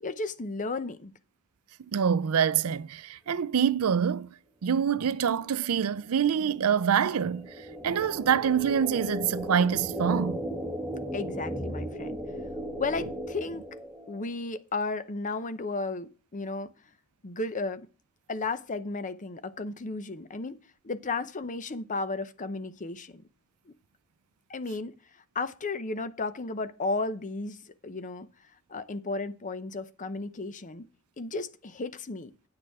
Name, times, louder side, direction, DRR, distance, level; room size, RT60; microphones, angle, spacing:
voice 1, 0.0-1.1 11.1-12.2 12.8-13.6 14.1-16.7 17.2-17.9 18.3-20.6 20.8-23.2 24.5-24.9 25.3-28.3 28.7-30.8 31.2-32.3, left 3 dB, 35° left, 0.7 m, -34 dB
voice 2, 1.9-4.3 4.6-10.4, right 7 dB, 80° right, 0.5 m, -26 dB
sound 1, 5.4-14.3, equal, 10° left, 2.1 m, -37 dB
9.6 x 6.7 x 4.8 m
head